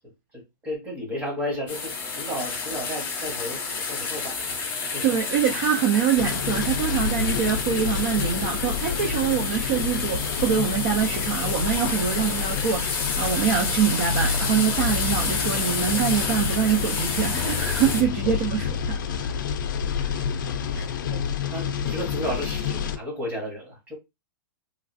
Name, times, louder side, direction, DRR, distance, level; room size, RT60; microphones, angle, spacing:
voice 1, 0.0-3.6 3.9-5.0 20.0-20.5 21.1-21.2 21.5-24.0, equal, 15° right, 0.9 m, -33 dB
sound 1, 1.7-18.0, left 4 dB, 15° left, 0.6 m, -30 dB
voice 2, 5.0-19.3 20.7-20.9, right 8 dB, 35° right, 0.4 m, -25 dB
sound 2, 6.2-23.0, left 6 dB, 60° left, 0.5 m, -29 dB
3.1 x 2.4 x 2.5 m
supercardioid pair, 170°, 12 cm